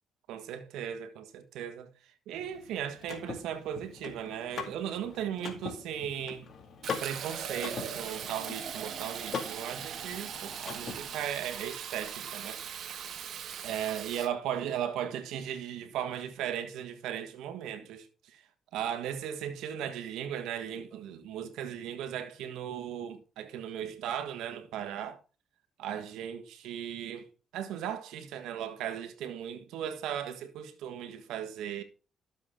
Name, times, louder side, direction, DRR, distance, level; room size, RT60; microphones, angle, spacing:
voice 1, 0.3-1.9 2.3-6.5 7.0-13.1 13.6-18.4 18.7-25.2 25.8-27.3 27.5-31.8, right 9 dB, 90° right, 1.5 m, -37 dB
Car / Mechanisms, 2.3-11.3, left 6 dB, 60° left, 2.3 m, -42 dB
Fill (with liquid), 6.8-14.3, right 8 dB, 65° right, 1.4 m, -40 dB
12.5 x 7.2 x 3.7 m
cardioid pair, 90°, 0 cm